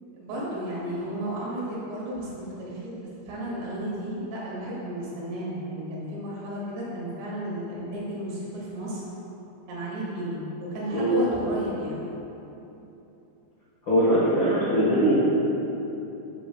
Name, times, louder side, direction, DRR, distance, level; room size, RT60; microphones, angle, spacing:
voice 1, 0.2-3.0 3.3-9.0 9.7-12.0, equal, 75° right, -7 dB, 4.5 m, -33 dB
voice 2, 13.9-15.2, right 1 dB, 75° left, -10 dB, 1.0 m, -21 dB
11.0 x 9.3 x 2.4 m, 3.0 s
omnidirectional pair, 5.1 m